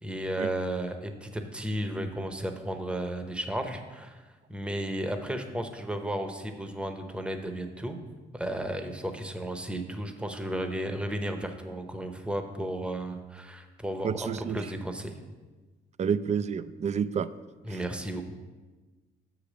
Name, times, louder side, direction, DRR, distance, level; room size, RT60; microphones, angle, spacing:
voice 1, 0.0-8.0 8.3-15.2 17.6-18.2, right 1 dB, 5° right, 6 dB, 0.8 m, -34 dB
voice 2, 14.0-14.6 16.0-17.3 17.7-17.8, right 7 dB, 35° right, 15 dB, 0.4 m, -29 dB
6.6 x 5.1 x 6.4 m, 1.3 s
cardioid pair, 90°, 20 cm